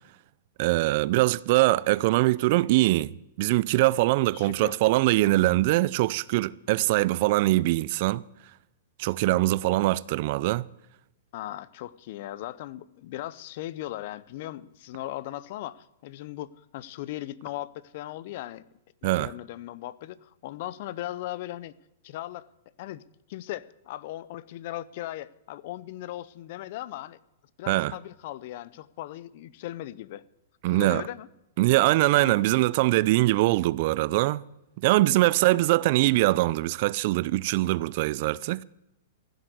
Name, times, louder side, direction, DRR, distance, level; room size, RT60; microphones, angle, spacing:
voice 1, 0.6-3.1 3.4-8.2 9.0-10.6 19.0-19.3 27.7-27.9 30.6-31.0 31.6-34.4 34.8-38.6, right 18 dB, 50° right, 0.4 m, -23 dB
voice 2, 4.3-4.8 11.3-18.7 19.0-21.8 22.0-22.5 22.8-23.0 23.3-27.2 27.6-30.2 30.7-31.3 32.2-32.4 35.5-35.6, left 14 dB, 50° left, 0.6 m, -38 dB
15.5 x 7.9 x 7.9 m
hypercardioid pair, 140°, 0 cm